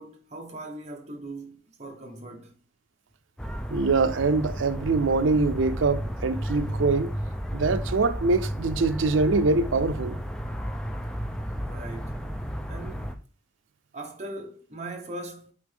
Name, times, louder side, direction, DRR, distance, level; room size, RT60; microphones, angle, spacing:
voice 1, 0.0-2.6 11.7-12.3 12.7-13.1 13.9-15.5, right 2 dB, 35° right, 1.3 m, -40 dB
sound 1, 3.4-13.1, equal, 5° left, 0.5 m, -33 dB
voice 2, 3.7-7.1 7.5-10.2, right 3 dB, 80° right, 0.5 m, -24 dB
8.6 x 4.0 x 3.5 m
head